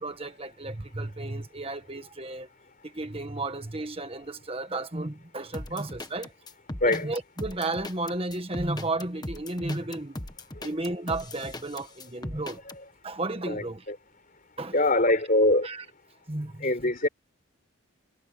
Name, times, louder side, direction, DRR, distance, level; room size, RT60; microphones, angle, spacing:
voice 1, 0.0-2.5 2.9-6.3 6.8-10.1 10.6-12.6 13.0-13.8 14.6-14.7 15.6-15.8 16.3-16.7, right 2 dB, 25° right, 1.5 m, -33 dB
sound 1, 5.5-12.8, left 1 dB, 20° left, 1.3 m, -39 dB
voice 2, 13.5-14.0 14.7-15.7 16.6-17.1, left 1 dB, 40° left, 4.8 m, -23 dB
head